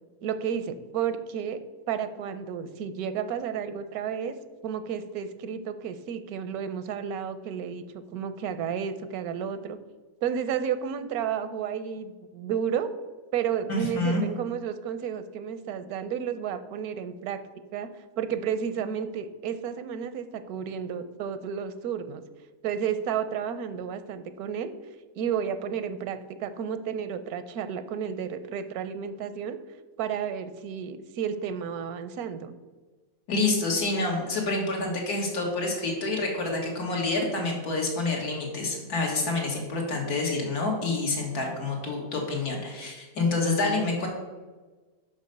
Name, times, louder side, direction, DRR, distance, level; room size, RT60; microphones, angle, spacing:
voice 1, 0.2-1.6 1.9-4.4 4.6-9.8 10.2-12.9 13.3-17.4 17.7-17.9 18.2-22.2 22.6-24.7 25.1-29.6 30.0-32.5, right 8 dB, 80° right, 11 dB, 1.1 m, -32 dB
voice 2, 13.7-14.2 33.3-44.1, left 3 dB, 85° left, 0 dB, 2.2 m, -28 dB
6.1 x 5.3 x 6.6 m, 1.3 s
omnidirectional pair, 1.6 m